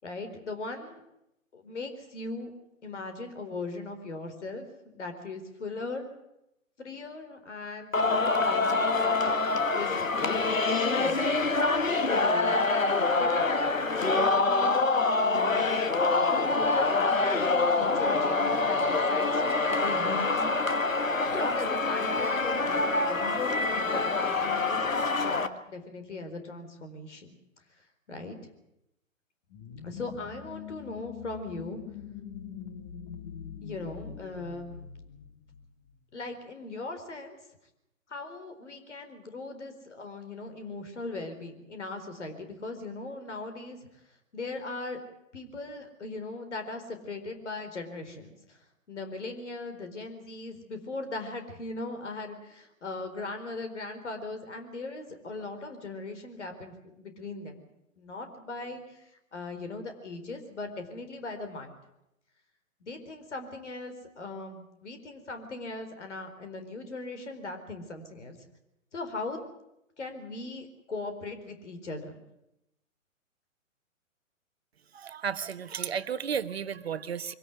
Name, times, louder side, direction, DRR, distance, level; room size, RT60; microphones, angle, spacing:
voice 1, 0.0-1.0 1.5-2.5 2.8-4.7 4.9-6.2 6.8-10.1 10.7-11.6 12.2-12.6 13.1-14.8 15.2-15.7 16.2-20.6 21.3-27.3 28.1-28.4 29.8-31.8 33.6-34.7 36.1-37.4 38.1-43.9 44.3-45.0 45.3-57.7 58.0-61.8 62.8-68.4 68.9-69.4 70.0-72.2, left 3 dB, 60° left, 7 dB, 4.4 m, -39 dB
Singing, 7.9-25.5, left 3 dB, 75° left, 1.7 m, -26 dB
sound 1, 29.5-36.0, left 8 dB, 35° left, 2.4 m, -43 dB
voice 2, 74.9-77.3, right 7 dB, 50° right, 12 dB, 1.3 m, -33 dB
23.5 x 17.0 x 9.4 m, 0.84 s
figure-of-eight pair, 125°, 40 cm